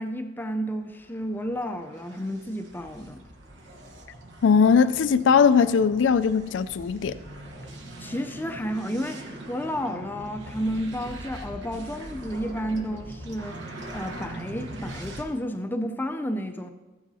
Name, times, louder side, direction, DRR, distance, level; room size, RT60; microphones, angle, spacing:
voice 1, 0.0-3.2 8.0-13.6 13.9-16.7, equal, 10° left, 0.4 m, -31 dB
sound 1, 0.8-15.2, right 1 dB, 85° right, 1.2 m, -42 dB
voice 2, 4.4-7.2, left 6 dB, 85° left, 0.4 m, -20 dB
14.5 x 8.8 x 2.7 m
head